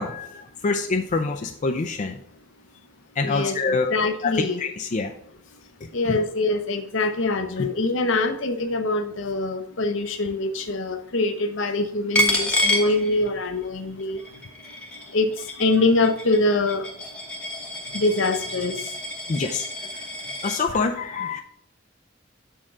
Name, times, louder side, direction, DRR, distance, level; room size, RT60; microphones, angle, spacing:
voice 1, 0.0-2.2 3.2-5.1 6.0-6.2 7.6-7.7 19.3-19.7 20.4-21.4, left 4 dB, 40° left, 4 dB, 0.4 m, -26 dB
voice 2, 3.2-4.6 5.9-14.2 15.1-15.3 15.6-16.9 17.9-18.8, left 2 dB, 70° left, 7 dB, 0.8 m, -24 dB
Coin (dropping), 12.1-13.6 14.0-20.6, left 1 dB, 5° left, 0.9 m, -28 dB
6.5 x 3.7 x 5.9 m, 0.69 s
head